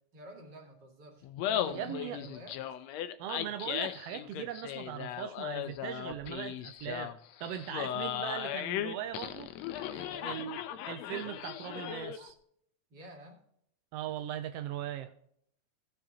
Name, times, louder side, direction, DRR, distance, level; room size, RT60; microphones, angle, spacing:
voice 1, 0.1-2.6 9.9-10.4 12.9-13.4, left 1 dB, 40° right, 2.7 m, -49 dB
Laughter, 1.2-12.3, left 10 dB, 80° left, 1.8 m, -37 dB
voice 2, 1.7-2.2 3.2-7.1 7.4-9.5 10.2-10.6 10.9-12.3 13.9-15.1, right 10 dB, 80° right, 1.4 m, -39 dB
16.5 x 6.8 x 2.9 m
omnidirectional pair, 3.3 m